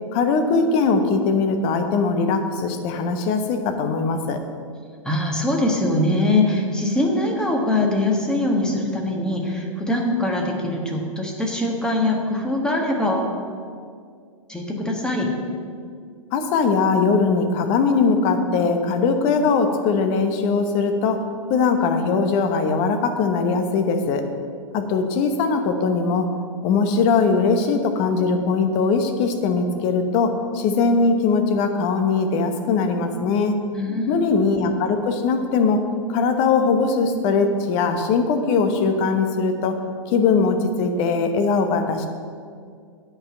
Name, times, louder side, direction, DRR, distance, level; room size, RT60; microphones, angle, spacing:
voice 1, 0.1-4.4 16.3-24.2 24.7-26.3 26.6-33.6 34.1-35.8 36.1-39.8 40.1-42.1, left 4 dB, 35° left, 6 dB, 1.0 m, -20 dB
voice 2, 5.0-13.3 14.5-15.3 33.7-34.4, left 1 dB, 5° left, 0 dB, 1.4 m, -22 dB
8.7 x 5.6 x 7.5 m, 2.2 s
figure-of-eight pair, 105°, 17 cm